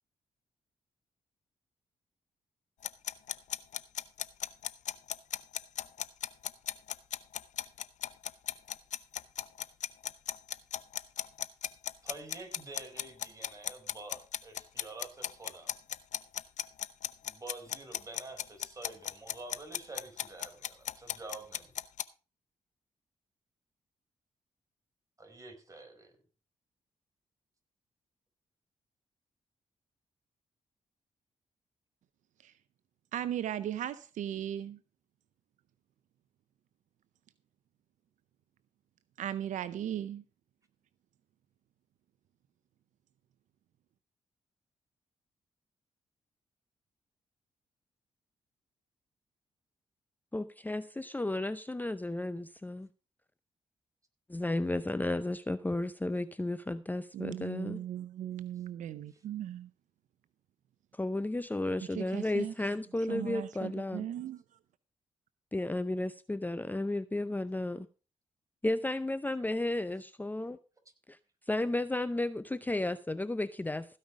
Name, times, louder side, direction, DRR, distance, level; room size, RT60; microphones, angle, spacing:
sound 1, 2.8-22.0, left 10 dB, 70° left, 0.7 m, -36 dB
voice 1, 12.0-15.7 17.2-21.7 25.2-26.2 59.1-59.2, right 2 dB, 25° right, 4.9 m, -48 dB
voice 2, 33.1-34.8 39.2-40.2 57.1-59.7 61.9-62.5 63.1-64.4, right 11 dB, 80° right, 0.6 m, -37 dB
voice 3, 50.3-52.9 54.3-57.8 61.0-64.1 65.5-67.9 68.6-70.6 71.1-71.2 71.5-74.0, left 2 dB, 15° left, 0.6 m, -33 dB
16.0 x 5.5 x 6.1 m
supercardioid pair, 50°, 13 cm